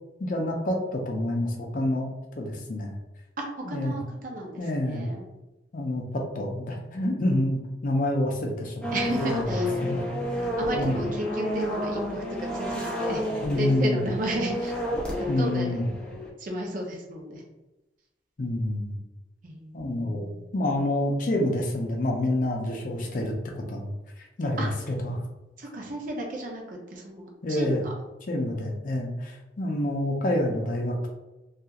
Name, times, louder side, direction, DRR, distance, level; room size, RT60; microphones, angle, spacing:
voice 1, 0.2-2.9 3.6-4.0 4.6-5.0 5.7-8.9 9.2-10.0 10.7-11.0 13.4-14.1 15.3-15.8 18.4-19.0 19.7-25.2 27.4-27.8 28.3-31.1, left 1 dB, 50° left, 1 dB, 0.5 m, -28 dB
voice 2, 3.4-5.2 8.9-9.7 10.4-14.7 15.4-15.8 16.4-17.4 19.4-20.4 24.6-24.7 25.6-27.9, right 1 dB, 50° right, 0 dB, 0.6 m, -33 dB
sound 1, 8.8-16.3, left 1 dB, 5° left, 0.6 m, -31 dB
2.8 x 2.3 x 2.3 m, 1.0 s
head